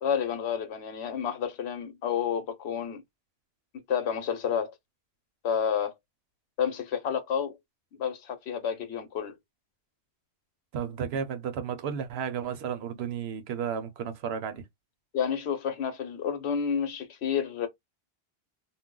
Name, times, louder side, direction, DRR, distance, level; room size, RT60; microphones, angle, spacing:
voice 1, 0.0-3.0 3.9-4.7 5.4-5.9 6.6-7.5 7.9-9.3 15.1-17.7, left 7 dB, 85° left, 1.0 m, -30 dB
voice 2, 10.7-14.7, right 7 dB, 75° right, 0.8 m, -33 dB
2.3 x 2.1 x 3.6 m
omnidirectional pair, 1.1 m